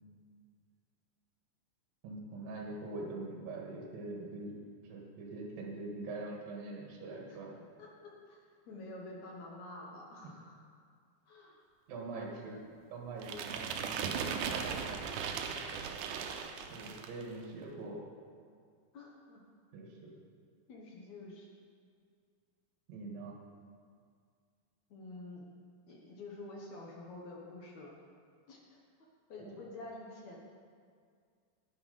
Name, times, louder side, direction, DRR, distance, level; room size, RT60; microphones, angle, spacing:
voice 1, 2.0-4.5 4.8-7.5 10.2-10.3 11.9-12.6 12.9-15.1 16.7-18.0 19.7-20.1 22.9-23.4 29.4-29.5, right 2 dB, 70° right, -1 dB, 3.1 m, -43 dB
voice 2, 7.8-10.6 11.3-11.5 12.5-12.6 16.3-16.4 18.9-19.4 20.7-21.5 24.9-25.5 25.9-27.9 28.5-28.8 29.3-30.4, left 2 dB, 60° left, -2 dB, 2.1 m, -48 dB
sound 1, 13.2-17.2, right 6 dB, 85° right, 1.8 m, -38 dB
11.0 x 9.7 x 5.5 m, 2.1 s
omnidirectional pair, 4.5 m